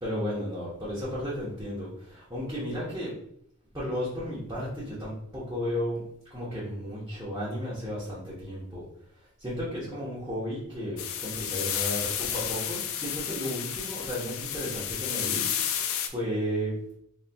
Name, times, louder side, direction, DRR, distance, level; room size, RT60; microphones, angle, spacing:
voice 1, 0.0-3.1 3.7-6.0 6.3-8.8 9.4-15.7 16.1-16.7, equal, 15° right, -9 dB, 1.0 m, -33 dB
sound 1, 11.0-16.1, left 9 dB, 65° left, 0.4 m, -31 dB
4.3 x 4.0 x 2.3 m, 0.70 s
head